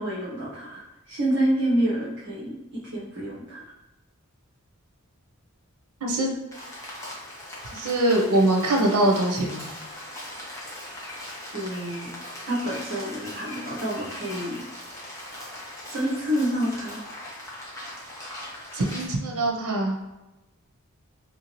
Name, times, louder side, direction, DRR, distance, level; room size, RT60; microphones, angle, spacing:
voice 1, 0.0-3.6 11.5-12.1 12.5-14.6 15.9-17.2, right 1 dB, 55° right, -7 dB, 0.8 m, -28 dB
voice 2, 6.0-6.3 7.7-9.7 18.7-20.0, right 1 dB, 90° right, 1 dB, 0.7 m, -23 dB
Rain, 6.5-19.1, left 1 dB, 15° left, 0.8 m, -39 dB
3.2 x 2.7 x 2.9 m, 1.0 s
head